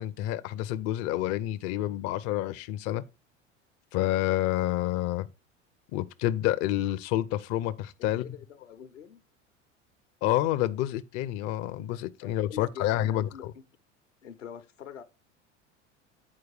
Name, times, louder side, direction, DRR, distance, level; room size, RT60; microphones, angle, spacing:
voice 1, 0.0-3.0 3.9-5.3 5.9-8.3 10.2-13.5, left 14 dB, 45° left, 0.5 m, -28 dB
voice 2, 8.0-9.2 12.2-13.5 14.2-15.0, left 8 dB, 85° left, 0.9 m, -44 dB
8.4 x 4.6 x 4.7 m
figure-of-eight pair, 75°, 36 cm